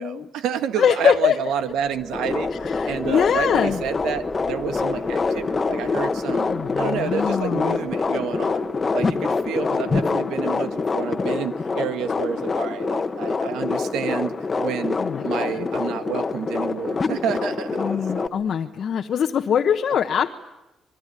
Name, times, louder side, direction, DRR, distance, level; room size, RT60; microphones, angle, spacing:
voice 1, 0.0-2.5 2.9-18.3, right 8 dB, 85° right, 9 dB, 1.7 m, -29 dB
voice 2, 0.8-1.4 2.6-3.8 6.5-7.8 15.0-15.7 17.8-20.3, left 8 dB, 60° left, 3 dB, 1.2 m, -23 dB
sound 1, 1.6-11.4, left 1 dB, 5° left, 2.5 m, -40 dB
sound 2, 2.1-18.3, left 4 dB, 30° left, 1.4 m, -25 dB
26.0 x 21.5 x 10.0 m, 0.96 s
cardioid pair, 90°, 0 cm